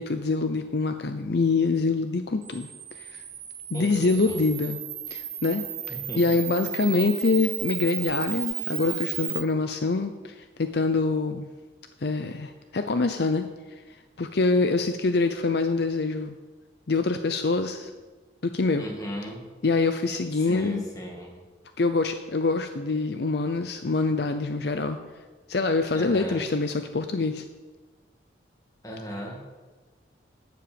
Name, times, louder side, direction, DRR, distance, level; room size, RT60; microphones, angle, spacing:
voice 1, 0.0-2.7 3.0-3.2 3.7-4.8 5.1-11.5 12.0-13.5 14.2-16.3 16.9-17.9 18.4-18.9 19.6-20.8 21.8-25.0 25.5-27.4, left 3 dB, 55° left, 8 dB, 0.6 m, -25 dB
Camera, 2.4-9.4, right 11 dB, 40° right, 1.3 m, -34 dB
voice 2, 3.7-4.4 5.9-6.4 18.8-19.4 20.5-21.3 25.9-26.4 28.8-29.4, equal, 20° left, 0 dB, 2.1 m, -36 dB
12.0 x 7.7 x 6.9 m, 1.3 s
head